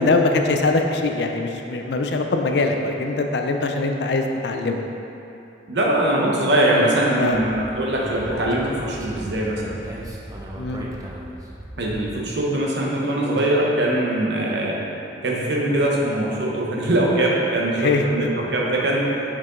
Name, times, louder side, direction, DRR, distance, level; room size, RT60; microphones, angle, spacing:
voice 1, 0.0-4.8 7.2-7.4 10.6-10.8 17.8-18.0, left 3 dB, 65° left, 4 dB, 0.4 m, -22 dB
voice 2, 5.7-9.8 11.8-14.8 15.2-19.2, right 1 dB, 65° right, -3 dB, 0.9 m, -22 dB
Speech, 7.3-12.2, right 1 dB, 20° right, 0.5 m, -36 dB
5.9 x 4.7 x 3.8 m, 2.9 s
head